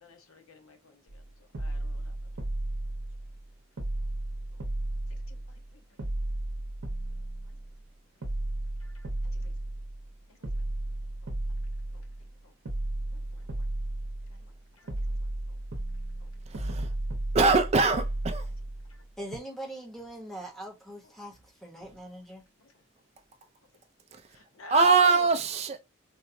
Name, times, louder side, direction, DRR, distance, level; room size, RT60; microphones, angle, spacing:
voice 1, 0.0-2.3 4.5-4.6 5.3-6.0 7.1-7.2 7.4-7.6 8.2-8.3 8.8-9.5 10.3-10.7 11.2-11.3 11.9-12.0 12.4-12.5 13.1-13.6 14.2-15.2 15.5-15.6 16.2-16.3 16.7-16.8 18.4-18.5 18.8-19.0 21.9-22.0 22.6-22.7 24.3-25.3, left 5 dB, 85° left, 0.8 m, -47 dB
sound 1, 1.1-1.2 1.5-3.5 3.8-5.7 6.0-7.8 8.2-10.1 10.4-12.3 12.6-14.6 14.9-19.0 19.3-19.4, right 1 dB, 70° right, 0.7 m, -34 dB
voice 2, 16.5-16.9 17.3-18.4 24.7-25.8, right 4 dB, 30° right, 0.3 m, -22 dB
voice 3, 19.2-22.4, right 1 dB, ahead, 0.8 m, -42 dB
4.0 x 2.1 x 2.6 m
head